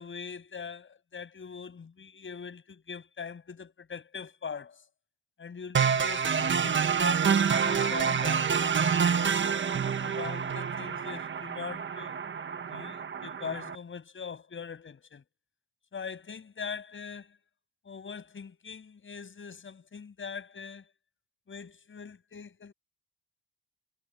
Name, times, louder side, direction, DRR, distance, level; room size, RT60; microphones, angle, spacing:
voice 1, 0.0-4.8 5.4-9.3 10.0-12.2 12.7-15.2 15.9-17.4 17.8-20.9 21.5-22.7, left 6 dB, 40° left, 7.7 m, -42 dB
sound 1, 5.7-13.7, right 6 dB, 40° right, 1.5 m, -27 dB
cardioid pair, 90°, 30 cm